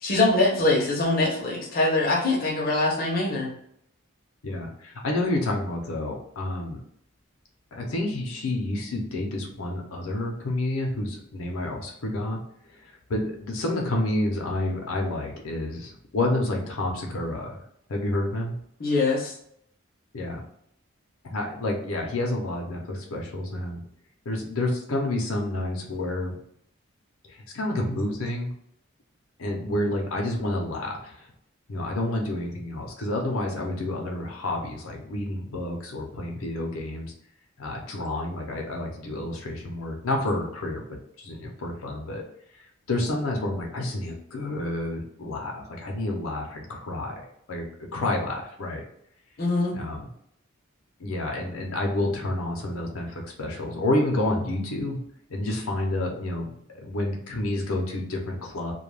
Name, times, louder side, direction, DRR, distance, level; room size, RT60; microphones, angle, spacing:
voice 1, 0.0-3.5 18.8-19.3 49.4-49.7, left 2 dB, 45° left, -3 dB, 0.7 m, -23 dB
voice 2, 4.4-6.8 7.7-12.4 12.7-17.6 17.9-18.5 20.1-20.4 21.2-23.8 24.3-26.3 27.2-28.5 29.4-31.3 31.7-37.1 37.6-42.2 42.5-47.2 47.5-47.7 47.9-48.8 49.7-50.1 51.0-55.0 55.3-58.7, left 1 dB, 90° left, 0 dB, 0.6 m, -29 dB
2.2 x 2.2 x 3.2 m, 0.69 s
head